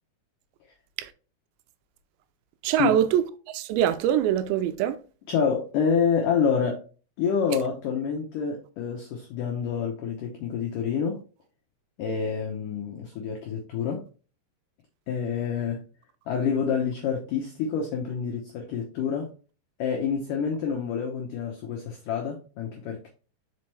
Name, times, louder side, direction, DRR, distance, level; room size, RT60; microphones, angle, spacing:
voice 1, 2.6-5.0, right 11 dB, 85° right, 2.8 m, -24 dB
voice 2, 5.3-6.8 7.2-11.2 12.0-14.0 15.1-15.8 16.3-19.3 19.8-23.1, left 6 dB, 90° left, 1.8 m, -27 dB
5.8 x 5.1 x 3.2 m
omnidirectional pair, 5.1 m